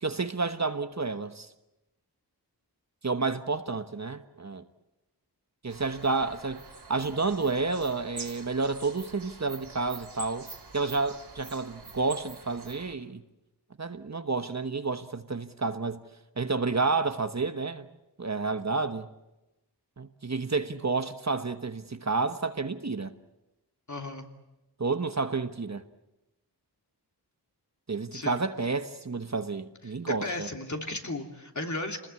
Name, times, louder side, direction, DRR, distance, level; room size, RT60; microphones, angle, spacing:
voice 1, 0.0-1.5 3.0-4.6 5.6-6.6 6.9-10.5 10.7-13.2 13.8-16.0 16.4-17.9 18.2-19.1 20.0-23.1 24.8-25.8 27.9-30.5, right 4 dB, 40° right, 1.2 m, -30 dB
sound 1, 5.7-12.9, right 3 dB, 70° right, 3.5 m, -46 dB
voice 2, 23.9-24.3 28.1-28.4 30.1-32.1, left 2 dB, 45° left, 3.0 m, -35 dB
27.5 x 20.5 x 8.4 m
wide cardioid pair, 75°, 41 cm